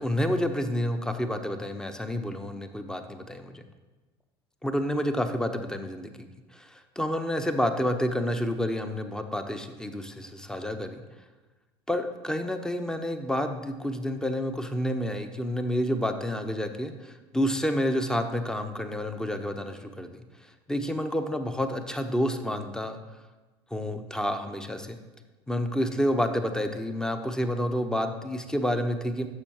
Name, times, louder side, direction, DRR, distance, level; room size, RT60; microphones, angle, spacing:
voice 1, 0.0-3.6 4.6-6.3 6.5-11.0 11.9-20.2 20.7-23.0 23.7-25.0 25.5-29.3, equal, 5° left, 8 dB, 0.8 m, -29 dB
14.0 x 7.0 x 2.9 m, 1.2 s
figure-of-eight pair, 70°, 14 cm